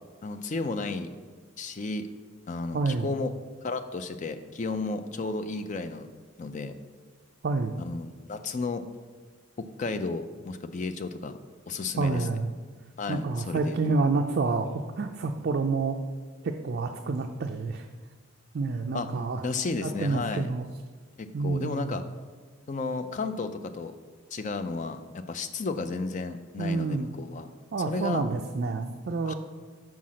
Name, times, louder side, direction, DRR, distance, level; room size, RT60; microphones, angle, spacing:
voice 1, 0.2-1.1 1.6-2.1 2.5-3.3 3.6-6.1 6.4-6.7 7.8-8.8 9.6-11.4 11.7-12.3 13.0-13.8 18.9-19.1 19.4-20.5 21.2-22.0 22.7-23.9 24.3-27.5 27.9-28.2 29.3-29.4, left 3 dB, 35° left, 9 dB, 0.4 m, -33 dB
voice 2, 2.7-3.1 7.4-7.8 12.0-12.5 13.1-16.0 16.4-17.9 18.5-19.4 19.8-20.7 21.3-21.9 26.6-27.1 27.7-29.3, right 3 dB, 50° right, 4 dB, 0.4 m, -28 dB
5.8 x 4.7 x 6.2 m, 1.5 s
head